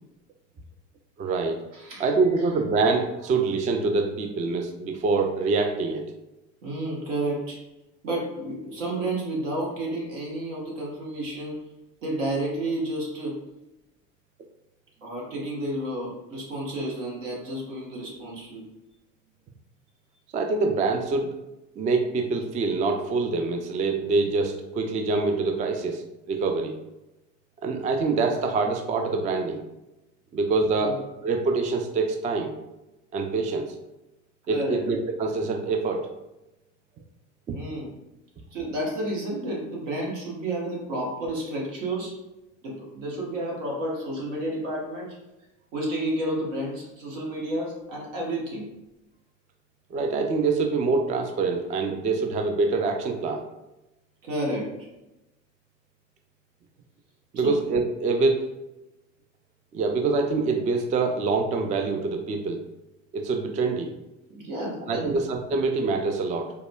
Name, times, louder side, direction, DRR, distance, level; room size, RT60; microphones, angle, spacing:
voice 1, 1.2-1.6 2.0-6.0 20.3-21.3 21.8-26.7 27.6-29.6 30.3-32.5 33.1-33.7 34.5-36.1 37.5-37.6 49.9-53.4 57.3-58.5 59.7-62.6 63.1-63.9 64.9-66.5, right 3 dB, 20° right, 4 dB, 0.3 m, -25 dB
voice 2, 1.7-2.0 6.6-7.6 8.0-11.6 12.0-13.4 15.0-18.6 30.7-31.0 34.5-34.8 37.5-37.9 38.5-42.1 42.6-45.1 45.7-48.7 54.2-54.9 57.4-57.6 64.3-65.2, right 1 dB, 75° right, -3 dB, 1.1 m, -31 dB
4.6 x 2.2 x 2.2 m, 0.95 s
hypercardioid pair, 65°, 37 cm